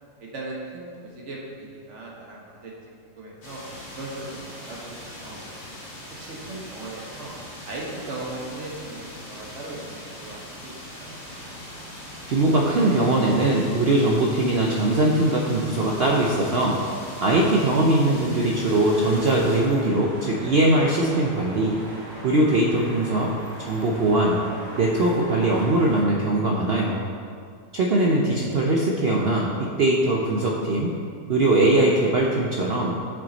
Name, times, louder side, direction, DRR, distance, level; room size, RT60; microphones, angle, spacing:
voice 1, 0.2-2.7 3.0-3.6 3.9-4.2 4.5-5.4 6.2-7.3 7.7-10.7 11.0-11.1, right 2 dB, 50° right, -3 dB, 1.4 m, -38 dB
sound 1, 3.4-19.6, left 1 dB, 65° left, 2.4 m, -41 dB
sound 2, 11.1-26.0, right 1 dB, 85° right, 2.5 m, -42 dB
voice 2, 12.3-16.8 17.2-21.8 22.2-23.3 23.6-24.4 24.8-27.1 27.7-31.0 31.3-33.0, right 1 dB, 65° right, -2 dB, 0.6 m, -21 dB
6.9 x 6.0 x 4.0 m, 2.3 s
omnidirectional pair, 1.7 m